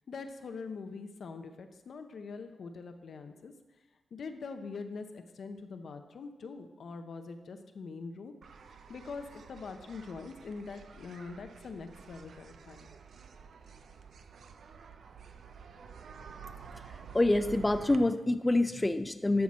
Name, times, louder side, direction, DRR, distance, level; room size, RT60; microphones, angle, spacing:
voice 1, 0.1-3.5 4.1-8.3 8.9-12.9, left 4 dB, 70° left, 7 dB, 0.8 m, -43 dB
sound 1, 8.4-18.0, right 6 dB, 75° right, 0.5 m, -50 dB
voice 2, 17.1-19.4, left 2 dB, 20° left, 9 dB, 0.4 m, -26 dB
12.5 x 5.9 x 4.2 m, 1.1 s
cardioid pair, 70°, 0 cm